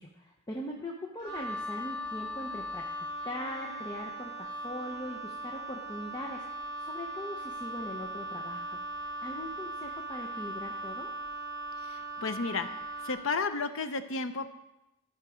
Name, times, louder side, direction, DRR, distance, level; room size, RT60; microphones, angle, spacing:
voice 1, 0.0-2.8 3.2-11.1, left 1 dB, 20° left, -1 dB, 0.8 m, -41 dB
Wind instrument woodwind instrument, 1.2-13.3, right 1 dB, 55° right, 2.1 m, -39 dB
voice 2, 11.8-12.7 13.0-14.5, left 4 dB, 65° left, 9 dB, 0.7 m, -32 dB
13.5 x 5.7 x 5.0 m, 0.92 s
head